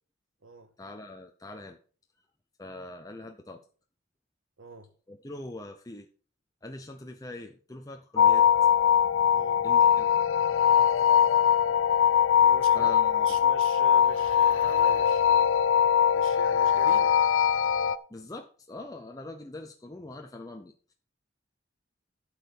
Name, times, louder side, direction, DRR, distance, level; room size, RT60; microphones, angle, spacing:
voice 1, 0.8-1.8 2.6-3.6 5.1-6.1 6.6-8.5 9.6-10.1 10.4-11.0 12.7-13.4 18.1-20.9, left 2 dB, 20° left, 0.7 m, -43 dB
voice 2, 4.6-4.9 9.3-9.6 12.4-12.9 13.2-15.7 16.1-17.2, right 3 dB, 85° right, 1.6 m, -43 dB
sound 1, 8.2-18.0, left 8 dB, 85° left, 0.6 m, -22 dB
11.5 x 4.8 x 6.9 m
head